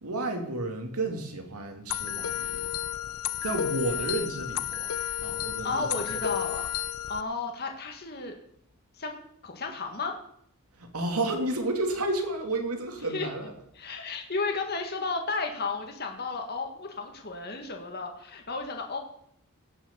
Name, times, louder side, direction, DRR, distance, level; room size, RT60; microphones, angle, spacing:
voice 1, 0.0-2.7 3.4-4.9 5.2-6.2 10.7-13.5, right 2 dB, 85° right, 4 dB, 2.4 m, -31 dB
sound 1, 1.9-7.2, left 10 dB, 75° left, 0.6 m, -32 dB
voice 2, 5.6-6.7 7.1-8.3 9.0-9.2 9.4-10.1 13.1-13.3 13.8-19.0, left 3 dB, 45° left, 4 dB, 1.7 m, -33 dB
17.0 x 6.3 x 6.9 m, 0.69 s
head